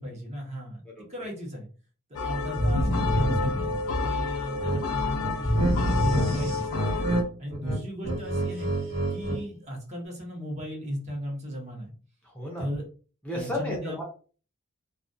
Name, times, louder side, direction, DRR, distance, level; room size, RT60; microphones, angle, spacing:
voice 1, 0.0-0.8 1.1-1.7 2.1-7.0 7.4-8.7 9.1-11.9 12.6-12.8 13.3-14.0, equal, 35° right, -1 dB, 0.9 m, -37 dB
sound 1, 2.2-7.2, left 3 dB, 70° left, 0.5 m, -30 dB
sound 2, 2.6-4.3 5.4-7.1, equal, 85° right, 0.9 m, -27 dB
sound 3, 4.6-4.8 5.2-6.3 6.6-7.2 7.5-9.4, right 2 dB, 55° right, 1.1 m, -28 dB
voice 2, 12.3-12.7 13.2-14.0, left 1 dB, 5° left, -2 dB, 0.6 m, -32 dB
2.3 x 2.2 x 2.6 m, 0.38 s
head